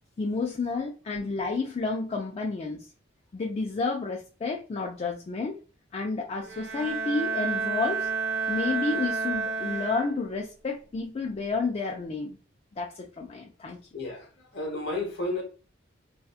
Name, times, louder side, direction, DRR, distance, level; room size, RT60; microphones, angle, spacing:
voice 1, 0.2-2.9 3.3-5.5 5.9-8.1 8.5-12.4 12.8-13.8, left 3 dB, 30° left, 0.3 m, -30 dB
Bowed string instrument, 6.4-10.5, right 4 dB, 60° right, 0.4 m, -30 dB
voice 2, 13.9-15.4, left 2 dB, 60° left, 0.9 m, -32 dB
2.7 x 2.2 x 2.3 m
head